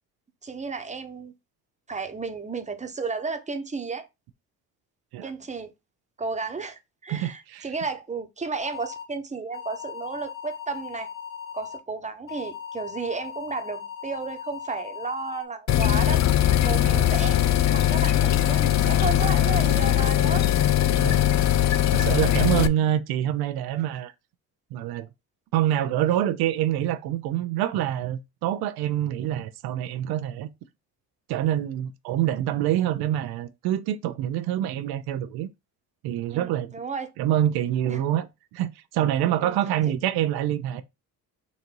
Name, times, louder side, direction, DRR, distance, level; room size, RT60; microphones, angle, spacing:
voice 1, 0.4-1.3 1.9-4.1 5.2-5.7 6.2-11.1 11.5-16.3 16.6-17.4 17.7-20.5 22.2-22.4 36.3-37.1 37.8-38.0 39.3-39.6, right 4 dB, 20° right, 1.0 m, -33 dB
voice 2, 7.1-7.7 16.9-17.1 21.0-21.2 21.9-24.1 24.7-25.1 25.5-30.5 31.3-35.5 36.0-36.7 37.2-38.3 38.5-40.8, right 12 dB, 85° right, 0.6 m, -26 dB
sound 1, 8.6-9.0 9.5-11.8 12.3-15.4, left 7 dB, 35° left, 1.7 m, -38 dB
sound 2, 15.7-22.7, left 12 dB, 50° left, 0.5 m, -20 dB
4.0 x 2.6 x 4.5 m
cardioid pair, 75°, 37 cm